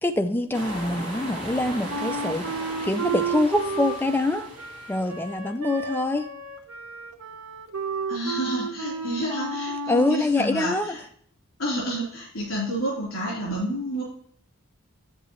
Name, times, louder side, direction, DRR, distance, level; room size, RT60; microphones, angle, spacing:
voice 1, 0.0-4.5 4.9-6.3 9.9-11.0, left 2 dB, 10° left, 0.3 m, -25 dB
sound 1, 0.5-5.3, right 1 dB, 35° right, 3.0 m, -37 dB
Wind instrument woodwind instrument, 1.9-10.3, right 3 dB, 70° right, 0.9 m, -32 dB
voice 2, 8.1-11.0 11.6-14.0, right 1 dB, 65° left, 3.4 m, -29 dB
8.5 x 7.4 x 3.0 m
head